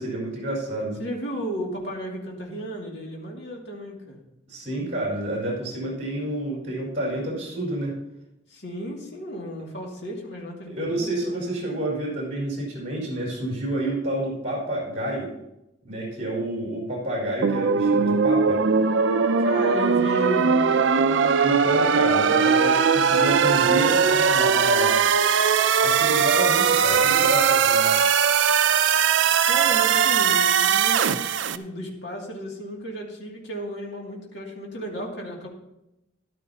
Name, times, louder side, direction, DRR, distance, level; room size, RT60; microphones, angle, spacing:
voice 1, 0.0-1.0 4.5-8.0 10.6-15.3 15.8-18.6 21.4-25.0 25.8-28.0, right 1 dB, 40° right, -3 dB, 4.9 m, -29 dB
voice 2, 1.0-4.2 8.5-11.3 19.4-21.6 29.4-35.5, equal, 60° left, -1 dB, 2.5 m, -34 dB
sound 1, 17.4-31.6, right 6 dB, 70° right, 0.5 m, -20 dB
13.5 x 11.5 x 2.9 m, 0.87 s
head